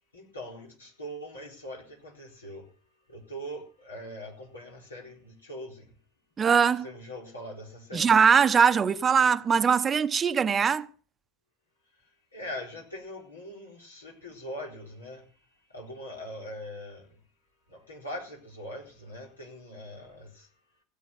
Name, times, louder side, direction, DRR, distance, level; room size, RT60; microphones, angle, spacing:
voice 1, 0.1-2.7 3.1-5.9 6.8-8.1 12.3-15.3 15.7-17.1 17.7-20.5, equal, 85° left, 4.0 m, -42 dB
voice 2, 6.4-6.9 7.9-10.9, right 6 dB, 30° right, 0.8 m, -21 dB
16.5 x 7.5 x 6.6 m
figure-of-eight pair, 75°, 0 cm